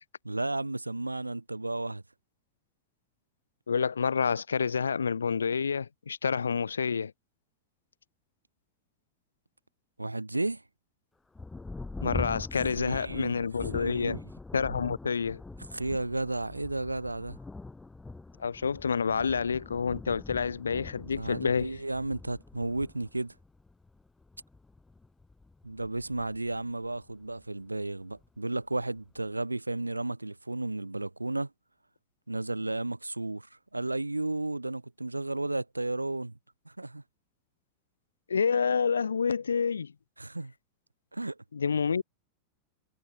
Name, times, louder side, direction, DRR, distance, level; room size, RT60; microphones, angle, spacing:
voice 1, 0.2-2.0 10.0-10.6 12.8-13.5 13.7-14.2 15.7-17.4 21.1-23.3 25.6-31.5 32.3-33.5 33.7-36.3 36.6-37.0 40.2-40.5 41.1-41.4, right 2 dB, 90° right, 3.4 m, -33 dB
voice 2, 3.7-7.1 12.0-14.2 14.5-15.4 18.4-21.8 38.3-39.9 41.5-42.0, left 6 dB, 75° left, 2.2 m, -28 dB
Thunder, 11.3-27.4 28.2-28.3 28.8-29.3, left 3 dB, 10° left, 6.0 m, -43 dB
figure-of-eight pair, 90°, 0 cm